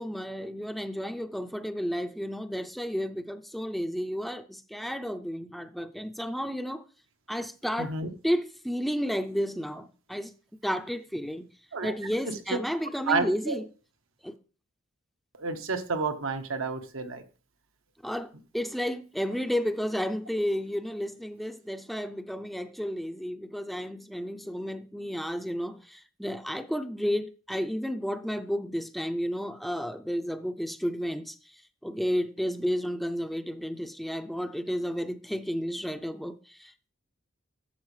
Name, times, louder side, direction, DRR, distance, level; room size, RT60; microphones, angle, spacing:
voice 1, 0.0-6.8 7.3-7.9 8.2-10.3 10.6-11.5 11.8-13.6 14.2-14.4 18.0-36.9, equal, ahead, 0.4 m, -32 dB
voice 2, 7.8-8.1 11.7-11.9 12.3-12.4 13.1-13.6 15.4-17.2, right 4 dB, 85° right, 1.1 m, -30 dB
11.5 x 7.3 x 3.2 m
head